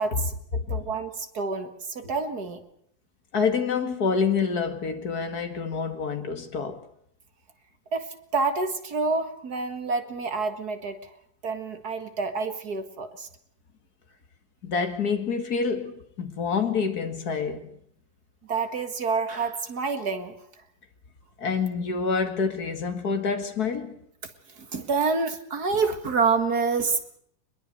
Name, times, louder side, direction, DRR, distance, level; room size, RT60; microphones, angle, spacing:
voice 1, 0.0-2.6 7.9-11.1 11.4-13.3 18.5-20.4 24.6-27.2, right 4 dB, 60° right, 2.4 m, -28 dB
voice 2, 3.3-6.9 14.6-17.8 21.4-24.0, left 5 dB, 55° left, 2.6 m, -27 dB
23.5 x 21.5 x 6.8 m
omnidirectional pair, 2.0 m